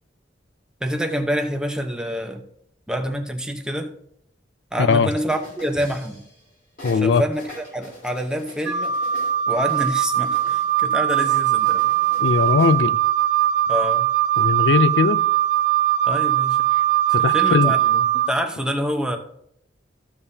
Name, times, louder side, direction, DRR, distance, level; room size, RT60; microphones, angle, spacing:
voice 1, 0.8-2.4 2.9-3.9 4.7-6.2 6.9-8.9 9.5-11.8 13.7-14.1 16.1-16.6 17.2-19.2, equal, 5° right, 0.8 m, -26 dB
voice 2, 4.8-5.1 6.8-7.2 12.2-13.0 14.4-15.2 17.1-17.7, left 5 dB, 85° left, 0.4 m, -19 dB
sound 1, 5.3-6.5 6.8-10.8 11.2-12.8, equal, 55° left, 3.9 m, -43 dB
Wind instrument woodwind instrument, 8.7-18.3, right 12 dB, 80° right, 1.3 m, -20 dB
14.0 x 7.0 x 2.8 m
head